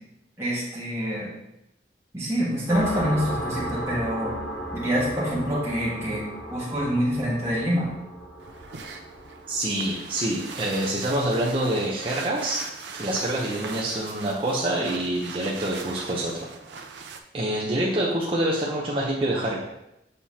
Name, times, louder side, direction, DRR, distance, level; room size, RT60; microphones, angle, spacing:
voice 1, 0.4-1.3 2.1-4.3 4.7-6.2 6.5-7.9, equal, 15° right, -8 dB, 1.6 m, -26 dB
sound 1, 2.7-11.9, equal, 65° left, 1.3 m, -35 dB
sound 2, 8.4-17.2, right 5 dB, 85° right, 0.6 m, -40 dB
voice 2, 9.5-12.6 12.9-16.5 17.3-19.6, right 1 dB, 30° right, -4 dB, 0.7 m, -26 dB
6.7 x 5.7 x 2.8 m, 0.86 s
head